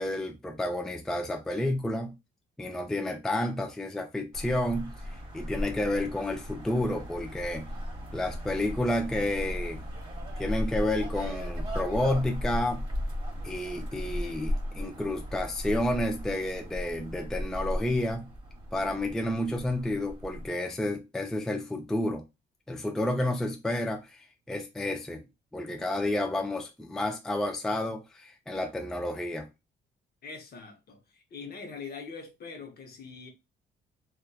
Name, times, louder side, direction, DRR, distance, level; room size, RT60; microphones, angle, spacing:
voice 1, 0.0-2.1 2.6-4.9 5.3-7.7 8.1-9.8 10.4-12.8 13.4-18.3 18.7-22.2 22.7-25.2 25.5-29.5, left 1 dB, ahead, 0.3 m, -30 dB
sound 1, 4.3-20.5, equal, 25° right, 1.2 m, -36 dB
voice 2, 30.2-33.3, left 5 dB, 50° left, 0.7 m, -43 dB
2.6 x 2.2 x 2.3 m
cardioid pair, 90°, 20 cm